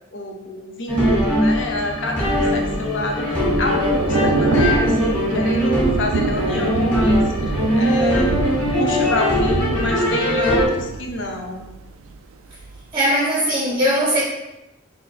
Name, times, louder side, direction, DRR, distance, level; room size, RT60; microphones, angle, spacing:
voice 1, 0.1-8.4 8.8-11.6, left 2 dB, 65° left, 2 dB, 0.6 m, -27 dB
sound 1, 0.9-10.7, equal, 10° left, 1.4 m, -20 dB
Thunder / Rain, 2.2-12.2 12.5-12.8, right 4 dB, 85° right, 0.3 m, -27 dB
voice 2, 12.9-14.2, equal, 25° right, -6 dB, 0.6 m, -19 dB
5.9 x 2.6 x 2.4 m, 0.96 s
head